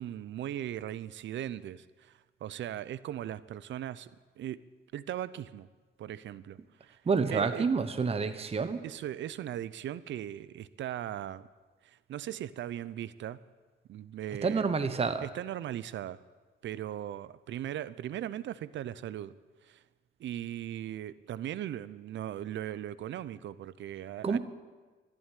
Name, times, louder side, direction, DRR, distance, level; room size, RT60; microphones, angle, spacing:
voice 1, 0.0-4.1 4.4-4.6 4.9-5.7 6.0-7.0 7.3-7.7 8.8-11.5 11.8-13.4 13.9-14.7 15.2-16.2 16.6-19.3 19.6-19.8 20.2-24.4, right 11 dB, 70° right, 17 dB, 0.6 m, -38 dB
voice 2, 7.0-8.8 14.4-15.2 24.2-24.4, right 5 dB, 30° right, 10 dB, 1.1 m, -28 dB
14.0 x 11.0 x 9.1 m, 1.3 s
cardioid pair, 90°, 20 cm